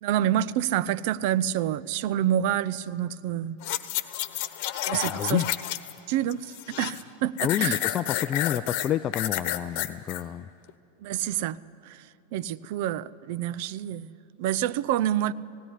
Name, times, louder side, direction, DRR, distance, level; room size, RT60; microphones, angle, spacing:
voice 1, 0.0-3.6 4.7-5.4 6.1-7.8 11.0-11.6 11.8-15.3, right 11 dB, 55° right, 17 dB, 0.6 m, -28 dB
sound 1, 3.6-6.0 6.3-7.0 7.4-10.2 10.7-10.8, left 13 dB, 55° left, 1.1 m, -30 dB
voice 2, 5.0-5.5 7.4-10.5, left 10 dB, 35° left, 11 dB, 0.4 m, -29 dB
17.5 x 17.0 x 10.0 m, 2.5 s
hypercardioid pair, 95°, 0 cm